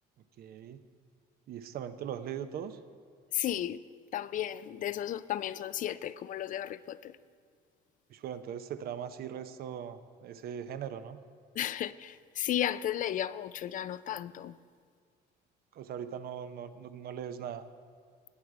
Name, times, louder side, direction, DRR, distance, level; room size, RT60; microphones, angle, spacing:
voice 1, 0.4-0.8 1.5-2.8 8.1-11.2 15.7-17.7, right 8 dB, 65° right, 0.7 m, -40 dB
voice 2, 3.3-3.8 4.1-7.1 11.6-14.6, left 11 dB, 50° left, 0.4 m, -34 dB
18.5 x 6.5 x 4.8 m
cardioid pair, 110°, 17 cm